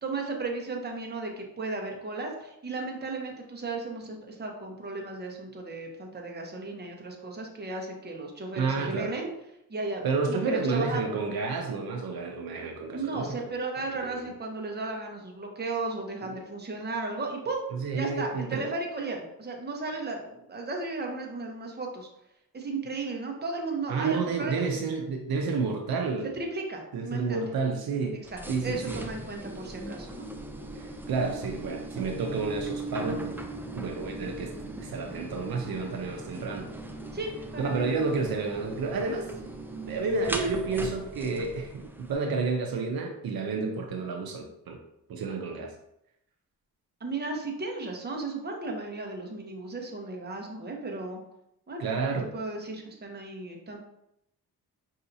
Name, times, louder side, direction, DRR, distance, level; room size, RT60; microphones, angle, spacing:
voice 1, 0.0-9.3 9.7-11.2 12.9-17.6 17.9-22.1 22.5-24.5 26.3-27.4 28.3-30.3 37.1-37.8 47.0-51.2 51.7-51.8 52.3-53.8, right 3 dB, 25° right, 1 dB, 1.0 m, -35 dB
voice 2, 8.5-9.1 10.0-13.5 13.9-14.3 16.3-16.4 17.7-18.6 23.9-26.3 26.9-28.2 28.5-29.0 30.8-33.4 33.7-34.5 34.8-36.7 37.6-39.3 39.9-44.8 45.1-45.7 51.8-52.3, right 4 dB, 70° right, 1 dB, 0.7 m, -30 dB
sound 1, 28.2-42.1, right 2 dB, 5° right, 0.4 m, -39 dB
5.6 x 2.7 x 2.7 m, 0.81 s
cardioid pair, 75°, 37 cm